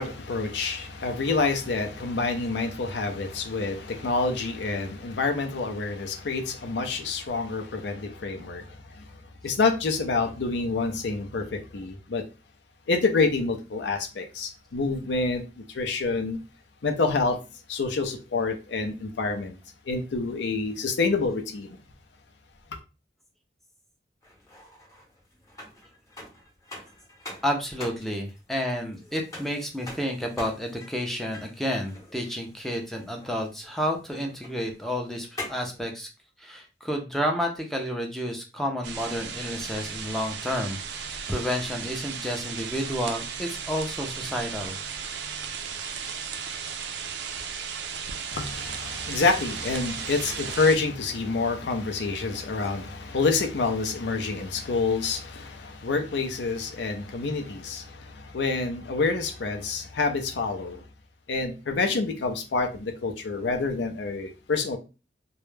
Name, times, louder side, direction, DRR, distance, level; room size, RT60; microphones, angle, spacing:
voice 1, 0.0-12.2 12.9-16.4 16.8-17.4 17.7-19.6 19.9-21.8 48.3-60.8 61.3-64.8, left 3 dB, 75° left, 0.5 m, -27 dB
sound 1, 24.2-35.8, left 2 dB, 20° left, 0.8 m, -45 dB
voice 2, 27.4-36.1 36.4-44.8, equal, ahead, 0.4 m, -30 dB
sound 2, 38.8-50.8, right 6 dB, 75° right, 0.4 m, -35 dB
2.2 x 2.0 x 3.1 m
head